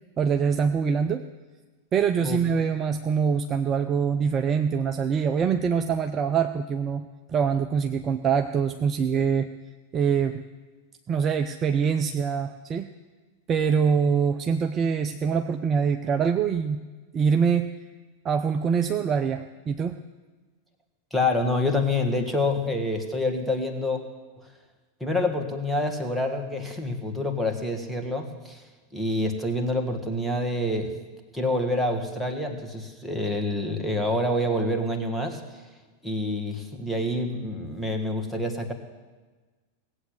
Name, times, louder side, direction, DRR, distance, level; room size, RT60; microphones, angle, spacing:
voice 1, 0.2-1.3 1.9-9.5 9.9-10.4 11.1-12.9 13.5-16.8 17.1-17.7 18.2-20.0, right 6 dB, 25° right, 7 dB, 0.6 m, -24 dB
voice 2, 21.1-24.0 25.0-28.6 28.9-30.9 31.3-35.4 36.0-38.7, left 1 dB, ahead, 2 dB, 1.9 m, -27 dB
18.0 x 8.2 x 7.9 m, 1.3 s
figure-of-eight pair, 90°, 0 cm